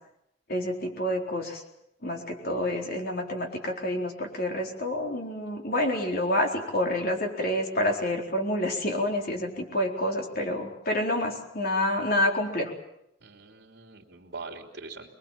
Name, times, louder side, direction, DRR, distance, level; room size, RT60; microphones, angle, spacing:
voice 1, 0.5-1.6 2.0-12.7, left 1 dB, 50° left, 1 dB, 4.1 m, -28 dB
voice 2, 13.2-15.1, right 3 dB, 60° right, 1 dB, 3.2 m, -43 dB
25.5 x 21.5 x 7.4 m, 0.80 s
head